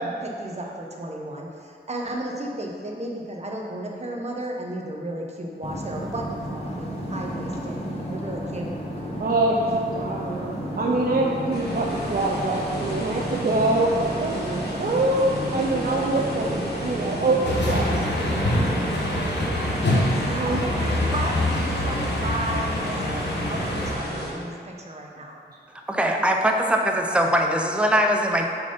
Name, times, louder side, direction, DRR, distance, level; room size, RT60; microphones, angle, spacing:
voice 1, 0.0-7.8 8.1-8.7 19.9-25.4, right 1 dB, 40° right, 0 dB, 0.9 m, -34 dB
sound 1, 5.6-18.8, equal, 35° left, 1.1 m, -32 dB
voice 2, 9.2-17.8 20.2-20.6, right 2 dB, 55° right, -2 dB, 0.6 m, -24 dB
sound 2, 11.5-24.3, equal, 65° left, 1.6 m, -33 dB
sound 3, 17.4-23.9, left 1 dB, 85° left, 1.2 m, -25 dB
voice 3, 25.9-28.4, equal, 5° right, 2 dB, 0.6 m, -21 dB
6.9 x 4.3 x 5.1 m, 2.3 s
wide cardioid pair, 120°, 18 cm